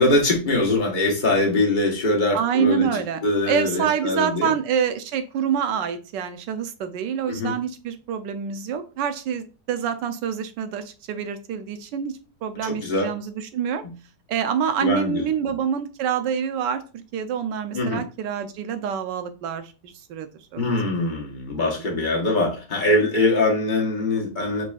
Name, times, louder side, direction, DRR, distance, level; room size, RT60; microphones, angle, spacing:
voice 1, 0.0-4.5 7.3-7.5 12.6-13.1 13.8-13.9 14.8-15.2 17.7-18.0 20.6-24.6, left 2 dB, 35° left, -1 dB, 1.0 m, -22 dB
voice 2, 2.3-3.2 3.5-13.8 14.3-16.8 17.1-20.7 21.5-21.9, right 8 dB, 85° right, 9 dB, 1.3 m, -26 dB
4.8 x 4.1 x 2.3 m, 0.34 s
omnidirectional pair, 1.9 m